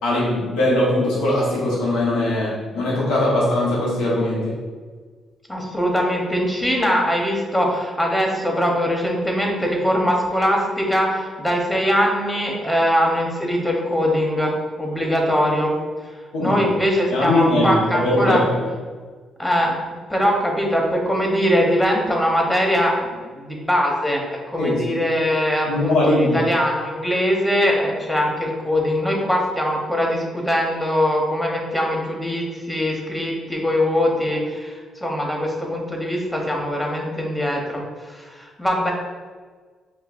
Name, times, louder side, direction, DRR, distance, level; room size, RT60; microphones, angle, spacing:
voice 1, 0.0-4.5 16.3-16.6 17.1-18.4 24.6-25.0 25.7-26.4, left 1 dB, 90° left, -6 dB, 1.0 m, -20 dB
voice 2, 5.5-14.5 14.8-15.7 16.0-18.4 19.4-19.8 20.1-38.9, equal, 10° left, 0 dB, 0.9 m, -22 dB
5.1 x 2.2 x 2.5 m, 1.5 s
supercardioid pair, 70°, 0 cm